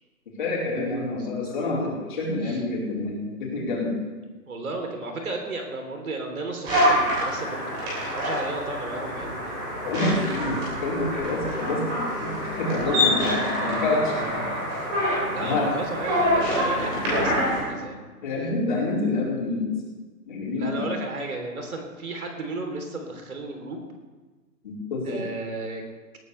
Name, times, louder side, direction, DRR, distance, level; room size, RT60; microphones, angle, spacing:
voice 1, 0.4-3.9 9.8-12.3 12.6-14.1 15.4-15.7 18.2-19.7 20.2-20.9 24.6-25.2, left 2 dB, 30° left, -5 dB, 4.3 m, -27 dB
voice 2, 1.1-1.7 2.4-2.6 4.4-9.8 13.3-14.7 15.3-18.0 20.5-23.8 25.0-25.8, right 2 dB, 60° right, 3 dB, 3.5 m, -34 dB
sound 1, 6.6-17.6, equal, 10° right, 3.1 m, -26 dB
21.0 x 15.0 x 3.4 m, 1.3 s
hypercardioid pair, 170°, 49 cm